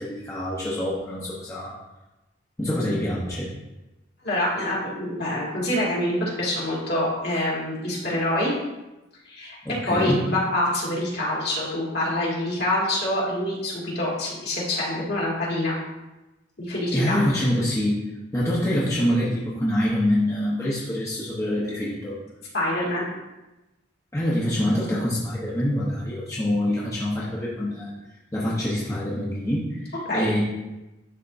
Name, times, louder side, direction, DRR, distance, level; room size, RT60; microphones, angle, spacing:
voice 1, 0.0-1.8 2.6-3.5 9.6-10.3 16.9-18.0 18.3-22.2 24.1-27.9 28.3-30.4, left 1 dB, 15° left, -7 dB, 0.9 m, -25 dB
voice 2, 4.2-8.5 9.3-9.6 9.9-15.8 16.6-17.2 22.5-23.1 30.1-30.3, left 1 dB, 60° left, -5 dB, 2.1 m, -26 dB
10.5 x 3.6 x 2.6 m, 1.0 s
head